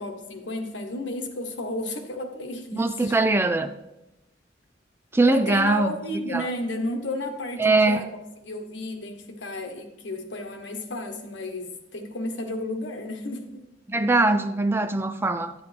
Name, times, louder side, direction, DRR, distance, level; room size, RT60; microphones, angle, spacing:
voice 1, 0.0-3.2 5.3-8.1 8.4-13.6, left 2 dB, 80° left, 1.2 m, -33 dB
voice 2, 2.7-3.7 5.1-5.9 6.3-6.5 7.6-8.0 13.9-15.5, right 2 dB, 15° right, 0.3 m, -21 dB
10.5 x 9.5 x 3.4 m
head